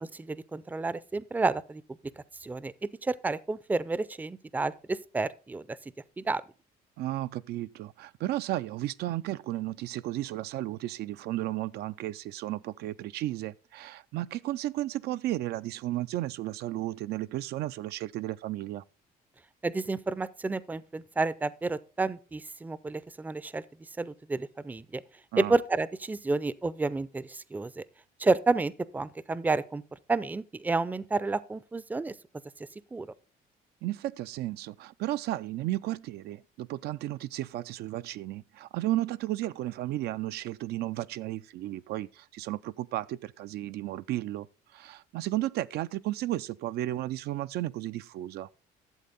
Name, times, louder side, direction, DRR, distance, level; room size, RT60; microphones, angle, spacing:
voice 1, 0.1-1.8 2.4-5.8 6.2-6.4 19.6-23.6 24.0-25.0 25.4-27.8 28.2-29.8 30.1-32.1 32.9-33.1, right 3 dB, 10° right, 0.4 m, -30 dB
voice 2, 7.0-18.8 25.3-25.6 33.8-44.5 44.7-48.5, right 15 dB, 70° right, 0.4 m, -33 dB
12.0 x 7.5 x 4.0 m
cardioid pair, 110°, 17 cm